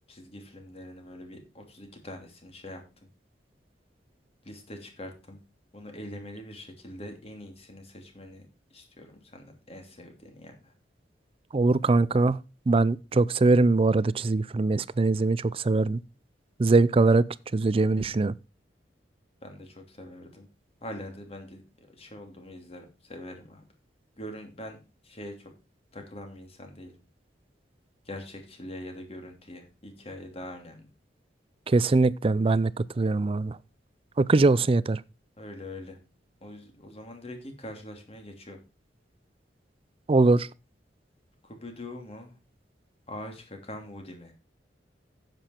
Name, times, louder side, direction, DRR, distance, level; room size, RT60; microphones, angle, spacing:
voice 1, 0.1-2.8 4.4-5.4 5.7-8.5 8.7-10.7 17.8-18.2 19.4-20.5 20.8-23.6 24.2-25.5 25.9-26.9 28.0-30.8 34.4-34.6 35.4-36.0 36.4-38.6 41.4-42.4 43.1-44.3, left 1 dB, 35° left, 2.8 m, -43 dB
voice 2, 11.5-12.4 12.7-16.0 16.6-17.3 17.5-18.3 31.7-33.6 34.2-35.0 40.1-40.5, right 3 dB, 30° right, 0.4 m, -22 dB
9.9 x 7.8 x 4.4 m
head